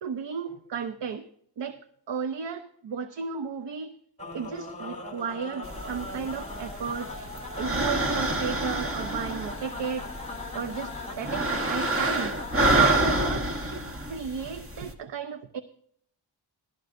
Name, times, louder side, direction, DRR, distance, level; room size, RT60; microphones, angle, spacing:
voice 1, 0.0-1.3 1.6-1.8 2.1-3.9 4.3-7.1 7.6-10.1 10.5-13.8 14.1-15.6, right 6 dB, 65° right, 10 dB, 0.8 m, -34 dB
sound 1, 4.2-13.3, left 3 dB, 15° left, 3.1 m, -39 dB
sound 2, 5.6-14.9, right 2 dB, 30° right, 1.5 m, -28 dB
16.0 x 12.0 x 2.6 m, 0.67 s
wide cardioid pair, 105°, 47 cm